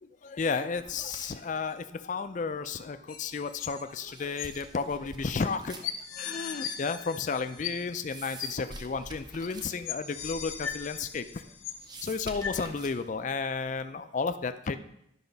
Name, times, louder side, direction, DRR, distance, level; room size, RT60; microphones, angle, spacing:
voice 1, 0.0-11.4 12.0-14.8, left 4 dB, 40° left, 9 dB, 0.4 m, -33 dB
sound 1, 0.8-13.9, right 2 dB, 20° right, 0.6 m, -50 dB
sound 2, 3.1-4.0 4.4-4.5 5.4-5.5 5.8-8.0 8.4-8.5 9.4-9.5 9.8-12.0 12.4-12.5, left 8 dB, 85° left, 0.8 m, -38 dB
10.5 x 5.6 x 4.0 m, 0.79 s
head